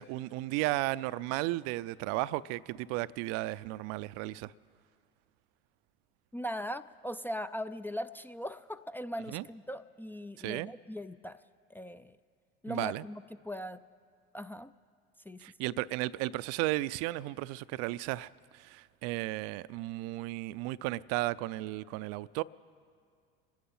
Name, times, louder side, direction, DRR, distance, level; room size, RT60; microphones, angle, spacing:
voice 1, 0.0-4.5 9.3-9.4 10.4-10.7 12.7-13.0 15.4-22.4, right 18 dB, 60° right, 0.4 m, -34 dB
voice 2, 6.3-11.4 11.7-12.2 12.6-13.8 14.3-14.7 15.3-15.5, equal, 5° left, 0.3 m, -39 dB
25.5 x 10.5 x 5.5 m
hypercardioid pair, 75°, 29 cm